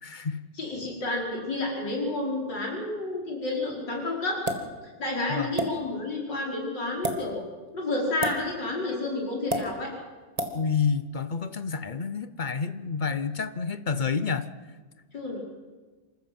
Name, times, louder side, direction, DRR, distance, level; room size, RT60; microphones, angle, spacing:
voice 1, 0.0-0.4 5.3-5.5 10.5-14.5, left 5 dB, 50° left, 11 dB, 0.6 m, -29 dB
voice 2, 0.6-4.4 5.0-7.4 7.7-9.9 15.1-15.4, left 2 dB, 85° left, -1 dB, 5.4 m, -30 dB
sound 1, 4.5-4.7 5.6-5.7 6.9-7.2 8.2-8.4 9.5-9.6 10.4-10.5, right 1 dB, 20° right, 1.8 m, -28 dB
26.5 x 14.5 x 7.7 m, 1.3 s
omnidirectional pair, 1.9 m